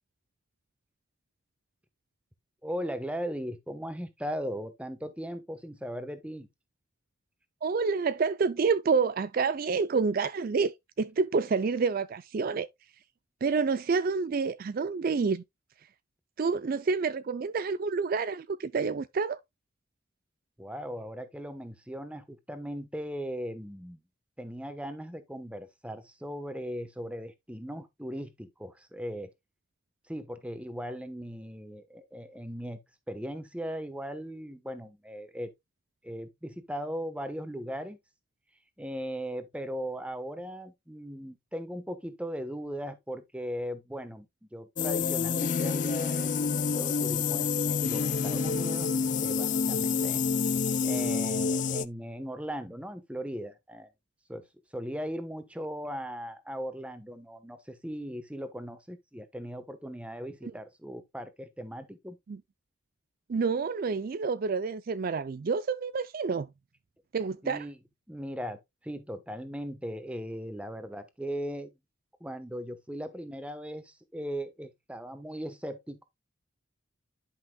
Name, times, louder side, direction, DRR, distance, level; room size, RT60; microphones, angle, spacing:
voice 1, 2.6-6.5 20.6-24.0 24.4-29.3 30.1-32.8 33.1-35.5 36.0-38.0 38.8-48.9 49.2-50.2 50.8-53.9 54.3-54.4 54.7-62.2 67.4-67.8 68.1-71.7 72.2-76.0, equal, 5° right, 1.0 m, -38 dB
voice 2, 7.6-12.7 13.4-15.4 16.4-19.4 60.4-60.5 62.3-62.4 63.3-66.5 67.1-67.7, right 4 dB, 45° right, 0.4 m, -28 dB
sound 1, 44.8-51.9, left 5 dB, 40° left, 0.4 m, -28 dB
10.5 x 5.7 x 2.2 m
head